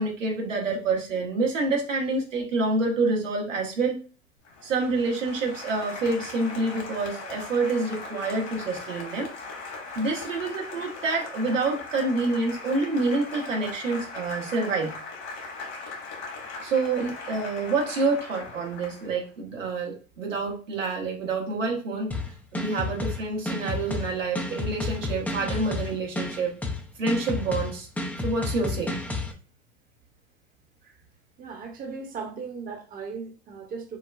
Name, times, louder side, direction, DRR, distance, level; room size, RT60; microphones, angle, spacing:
voice 1, 0.0-4.0 4.6-9.3 9.9-14.9 16.6-22.1 22.5-26.5 27.0-27.9 28.2-28.9, right 3 dB, 85° right, 1.3 m, -27 dB
Applause, 4.4-19.3, left 3 dB, 60° left, 1.7 m, -39 dB
sound 1, 22.1-29.3, left 3 dB, 5° left, 0.4 m, -31 dB
voice 2, 31.4-34.0, right 5 dB, 25° right, 0.8 m, -37 dB
6.0 x 2.2 x 2.3 m
hypercardioid pair, 85°, 37 cm